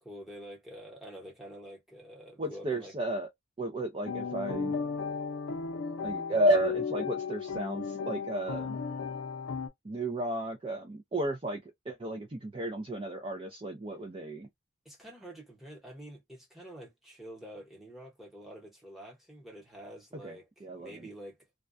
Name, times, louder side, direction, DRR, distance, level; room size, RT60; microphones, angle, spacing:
voice 1, 0.0-2.9 14.8-21.4, equal, ahead, 0.9 m, -47 dB
voice 2, 2.4-3.3 3.6-4.7 6.0-8.8 9.8-11.6 11.9-14.5 20.2-21.1, right 1 dB, 25° right, 0.4 m, -32 dB
sound 1, 4.1-9.7, left 5 dB, 80° left, 0.5 m, -35 dB
2.2 x 2.2 x 2.5 m
head